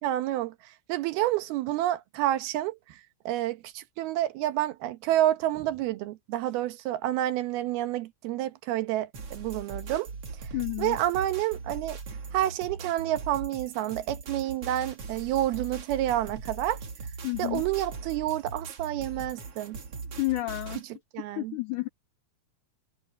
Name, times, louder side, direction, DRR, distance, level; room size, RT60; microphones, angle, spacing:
voice 1, 0.0-10.1 10.8-12.0 12.3-16.8 17.4-19.8 21.1-21.6, right 13 dB, 85° right, 3.0 m, -29 dB
sound 1, 9.1-20.8, right 4 dB, 45° right, 2.9 m, -40 dB
voice 2, 10.5-11.0 17.2-17.6 20.2-20.8 21.4-21.9, left 20 dB, 90° left, 1.8 m, -30 dB
omnidirectional pair, 4.3 m